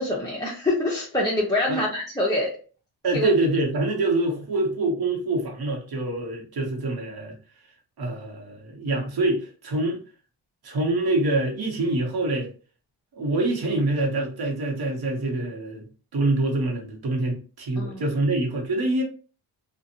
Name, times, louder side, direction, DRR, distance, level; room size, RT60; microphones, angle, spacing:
voice 1, 0.0-2.5 3.1-3.3 17.8-18.0, left 1 dB, 10° left, 0.7 m, -25 dB
voice 2, 3.0-7.3 8.0-10.0 10.6-12.5 13.2-15.9 16.1-19.0, right 2 dB, 60° right, 1.1 m, -25 dB
2.5 x 2.4 x 2.7 m
cardioid pair, 85°, 43 cm